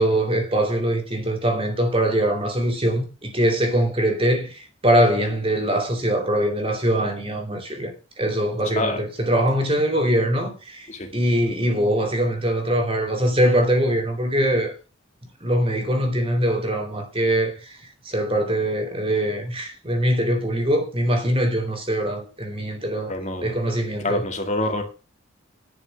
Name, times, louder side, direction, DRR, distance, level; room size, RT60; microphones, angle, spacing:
voice 1, 0.0-14.7 15.4-17.8 18.0-23.1 23.4-24.2, right 1 dB, 30° right, 2.7 m, -22 dB
voice 2, 8.7-9.0 10.9-11.1 23.1-23.6 24.0-24.8, left 1 dB, 35° left, 2.3 m, -26 dB
11.0 x 6.8 x 7.0 m
head